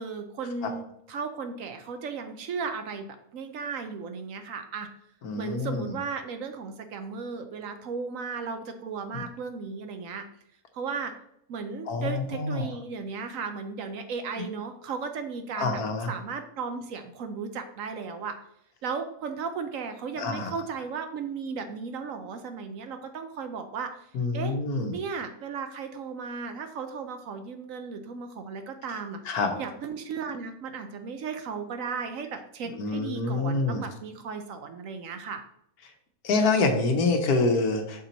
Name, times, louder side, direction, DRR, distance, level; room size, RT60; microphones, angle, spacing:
voice 1, 0.0-3.1 3.3-4.9 5.4-10.2 10.7-11.1 11.5-15.8 16.1-18.4 18.8-24.1 24.3-24.5 24.9-35.4, right 5 dB, 65° right, 7 dB, 1.0 m, -35 dB
voice 2, 5.2-5.9 9.1-9.2 11.9-12.7 15.5-16.1 20.2-20.5 24.1-24.9 29.2-29.5 32.8-33.8 36.2-38.0, left 3 dB, 75° left, 5 dB, 1.4 m, -26 dB
6.2 x 4.3 x 4.0 m, 0.72 s
omnidirectional pair, 1.6 m